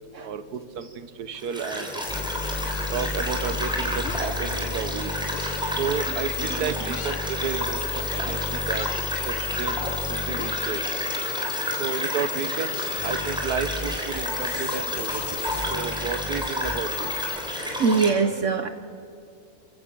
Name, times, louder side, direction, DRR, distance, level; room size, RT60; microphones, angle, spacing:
voice 1, 0.2-1.9 2.9-5.1 5.8-8.9 9.2-10.8 11.8-15.2 15.7-17.1, right 6 dB, 85° right, 11 dB, 1.6 m, -32 dB
sound 1, 1.3-18.1, equal, 5° right, 3.4 m, -31 dB
sound 2, 2.0-17.6, left 5 dB, 35° left, 0.4 m, -33 dB
sound 3, 4.0-4.5 5.3-5.8 6.8-7.4 8.6-9.2 10.4-11.2, left 7 dB, 55° left, 1.3 m, -39 dB
voice 2, 17.8-18.7, right 5 dB, 60° right, 9 dB, 1.1 m, -24 dB
28.5 x 16.0 x 6.2 m, 2.6 s
omnidirectional pair, 1.6 m